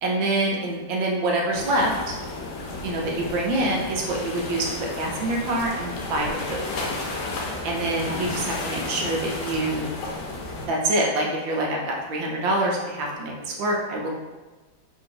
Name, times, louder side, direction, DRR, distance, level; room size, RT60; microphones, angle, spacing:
voice 1, 0.0-2.1 2.8-6.6 7.6-9.9 10.7-14.1, right 1 dB, 75° right, -1 dB, 1.5 m, -26 dB
sound 1, 1.5-10.7, left 2 dB, 65° left, 1.2 m, -32 dB
4.7 x 2.6 x 3.8 m, 1.2 s
omnidirectional pair, 2.2 m